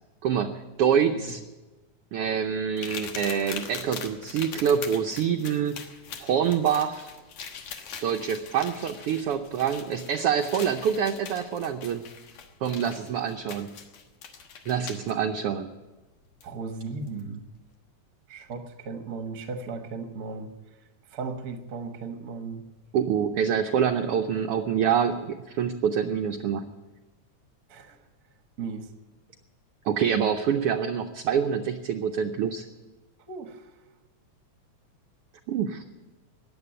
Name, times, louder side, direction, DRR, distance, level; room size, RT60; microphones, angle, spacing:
voice 1, 0.2-1.4 2.1-5.8 6.2-7.1 8.0-12.0 12.6-13.7 14.7-15.7 22.9-26.7 29.8-32.6 35.5-35.8, right 8 dB, 75° right, 5 dB, 1.3 m, -26 dB
sound 1, 2.8-15.1 16.4-16.5 17.1-17.2, left 6 dB, 65° left, 2.5 m, -41 dB
voice 2, 16.4-17.5 18.3-20.5 21.1-22.7 27.7-28.0 28.6-28.9 33.3-33.7, right 4 dB, 45° right, 6 dB, 1.2 m, -36 dB
15.0 x 10.5 x 8.8 m, 1.1 s
omnidirectional pair, 3.4 m